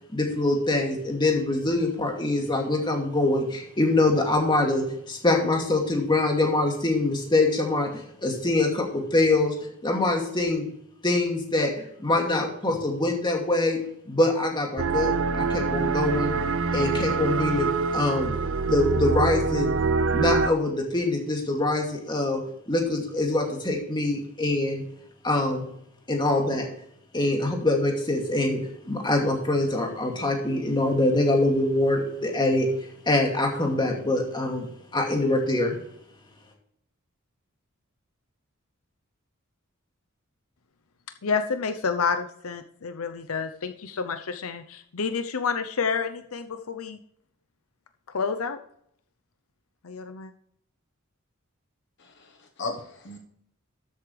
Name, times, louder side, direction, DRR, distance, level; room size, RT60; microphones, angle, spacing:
voice 1, 0.1-9.5 9.8-10.7 11.0-11.7 12.0-13.8 14.1-16.3 16.7-17.7 17.9-18.3 18.7-19.7 20.1-22.4 22.7-24.8 25.2-25.6 26.1-26.7 27.1-28.6 28.9-32.7 33.1-34.7 34.9-35.8, left 2 dB, 20° left, 1 dB, 2.5 m, -24 dB
sound 1, 14.8-20.5, right 4 dB, 65° right, 0.7 m, -25 dB
voice 2, 41.2-47.0 48.1-48.6 49.8-50.3, left 5 dB, 80° left, 8 dB, 0.7 m, -29 dB
voice 3, 52.0-53.2, left 3 dB, 55° left, 4 dB, 1.2 m, -36 dB
13.0 x 8.4 x 3.3 m, 0.71 s
head